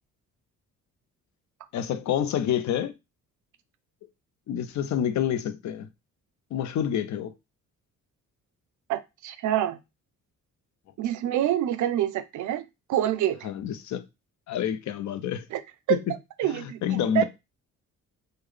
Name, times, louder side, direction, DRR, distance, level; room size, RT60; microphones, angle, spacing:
voice 1, 1.7-2.9 4.5-5.9 6.5-7.3 13.4-14.0 14.5-15.4 15.9-16.0 16.5-17.2, left 9 dB, 60° left, 0.5 m, -28 dB
voice 2, 8.9-9.8 11.0-13.5 15.5-15.6 15.9-16.0 16.4-17.2, right 12 dB, 65° right, 0.5 m, -26 dB
3.6 x 2.1 x 3.2 m
cardioid pair, 100°, 32 cm